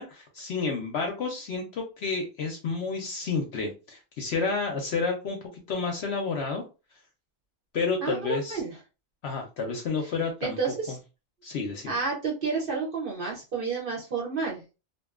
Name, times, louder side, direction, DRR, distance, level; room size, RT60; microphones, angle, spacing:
voice 1, 0.0-6.6 7.7-8.6 9.2-10.6 11.4-11.9, left 4 dB, 65° left, 2 dB, 0.7 m, -30 dB
voice 2, 8.0-8.8 10.4-11.0 11.9-14.6, right 4 dB, 50° right, -2 dB, 0.7 m, -30 dB
2.6 x 2.2 x 2.3 m, 0.30 s
omnidirectional pair, 1.4 m